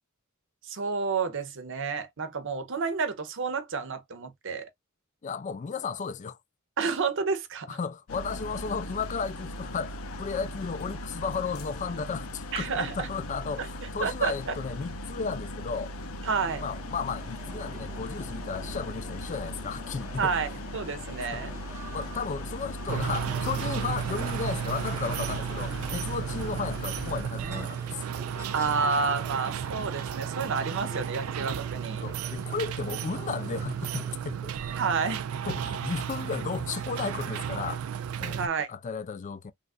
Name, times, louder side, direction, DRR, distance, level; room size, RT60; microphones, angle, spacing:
voice 1, 0.6-4.7 6.8-7.8 12.5-13.1 13.6-13.7 14.0-14.3 16.2-16.6 20.2-21.5 28.5-32.0 34.8-35.2 38.3-38.7, right 5 dB, 65° right, 0.7 m, -30 dB
voice 2, 5.2-6.4 7.7-15.9 16.6-20.4 21.3-21.4 21.9-28.0 32.0-34.6 35.5-37.8 38.2-38.4 38.7-39.5, left 5 dB, 35° left, 0.4 m, -34 dB
sound 1, 8.1-27.2, left 1 dB, 80° left, 0.6 m, -38 dB
sound 2, 16.2-34.2, right 1 dB, 15° right, 0.7 m, -48 dB
sound 3, 22.9-38.5, right 8 dB, 80° right, 0.3 m, -33 dB
3.2 x 2.4 x 2.4 m
head